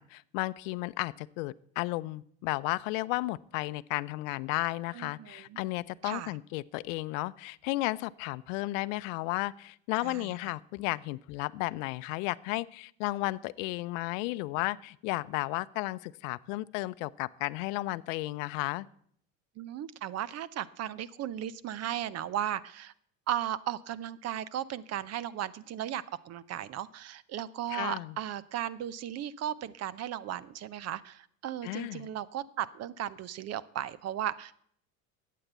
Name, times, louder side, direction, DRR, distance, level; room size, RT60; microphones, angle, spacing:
voice 1, 0.0-18.9 27.7-28.1 31.6-32.1, left 21 dB, 75° left, 15 dB, 0.6 m, -33 dB
voice 2, 4.9-5.6 6.0-6.3 10.0-10.3 19.6-22.9 23.3-34.5, right 11 dB, 40° right, 19 dB, 0.7 m, -36 dB
12.5 x 8.6 x 8.0 m, 0.64 s
supercardioid pair, 110°, 39 cm